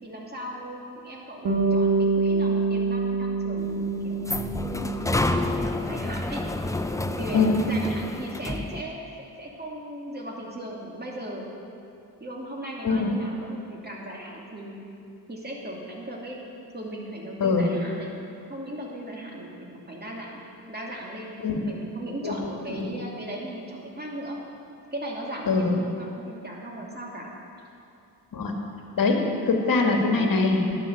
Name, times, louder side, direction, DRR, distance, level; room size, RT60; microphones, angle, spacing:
voice 1, 0.0-4.3 5.0-6.4 7.1-11.5 12.2-14.7 15.3-16.4 16.7-18.2 18.5-20.4 20.7-21.3 21.6-24.4 24.9-27.3, right 1 dB, 25° right, -2 dB, 2.7 m, -37 dB
Bass guitar, 1.4-5.7, right 4 dB, 65° right, 2.2 m, -26 dB
sound 1, 3.6-8.8, left 2 dB, 10° left, 0.5 m, -29 dB
voice 2, 12.8-13.2 17.4-17.7 21.4-21.6 22.2-22.4 22.7-23.0 25.5-25.8 28.3-28.6 29.0-30.8, left 3 dB, 55° left, 2 dB, 1.8 m, -23 dB
11.0 x 6.3 x 8.5 m, 2.6 s
cardioid pair, 60°, 41 cm